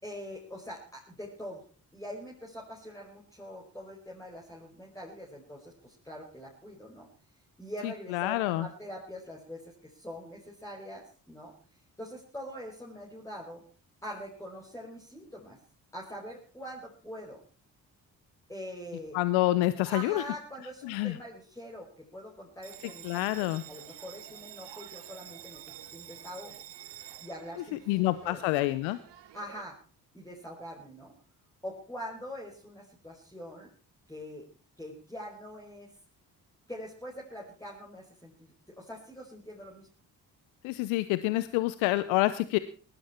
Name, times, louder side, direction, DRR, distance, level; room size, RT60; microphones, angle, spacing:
voice 1, 0.0-1.6 1.9-7.1 7.6-13.6 14.0-15.6 15.9-17.4 18.5-19.2 19.8-25.6 25.9-26.5 27.2-28.7 29.3-29.8 30.1-31.1 31.6-33.7 34.1-34.4 34.8-35.9 36.7-39.9, equal, 5° left, -2 dB, 5.2 m, -43 dB
voice 2, 8.1-8.7 19.1-20.2 20.8-21.2 23.0-23.6 27.7-29.0 40.6-42.6, left 17 dB, 75° left, 15 dB, 0.9 m, -27 dB
Bell, 22.6-29.6, right 13 dB, 60° right, 1.4 m, -49 dB
19.5 x 13.5 x 4.4 m, 0.41 s
hypercardioid pair, 45°, 47 cm